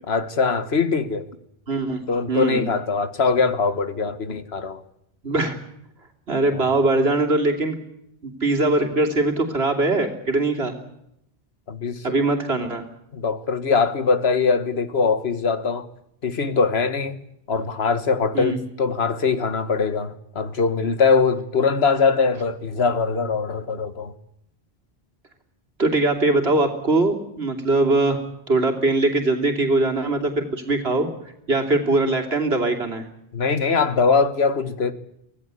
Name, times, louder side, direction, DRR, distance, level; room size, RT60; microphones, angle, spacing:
voice 1, 0.1-1.2 2.1-4.8 6.5-6.7 11.7-12.0 13.1-15.9 16.2-17.2 17.5-24.1 33.3-34.9, left 5 dB, 80° left, 1.7 m, -22 dB
voice 2, 1.7-2.0 2.3-2.7 5.2-5.5 6.3-7.8 8.2-10.7 12.0-12.8 18.3-18.6 25.8-28.2 28.5-31.1 31.5-33.0, right 2 dB, 85° right, 3.2 m, -21 dB
25.0 x 17.0 x 8.3 m
omnidirectional pair, 1.0 m